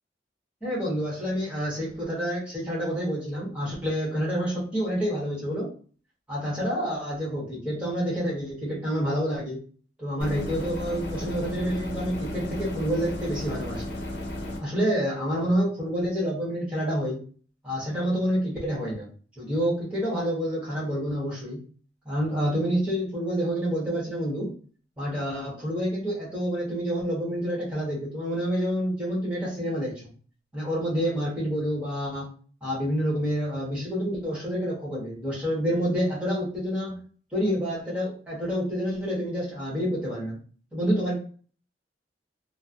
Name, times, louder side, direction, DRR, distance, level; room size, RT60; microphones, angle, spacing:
voice 1, 0.6-5.7 6.3-9.6 10.0-13.8 14.6-17.2 17.6-19.1 19.4-21.6 22.0-24.5 25.0-30.1 30.5-32.3 32.6-37.0 37.3-40.4 40.7-41.2, equal, 5° right, -6 dB, 1.3 m, -28 dB
sound 1, 10.2-14.6, left 1 dB, 70° left, 0.7 m, -34 dB
3.0 x 2.2 x 2.5 m, 0.41 s
head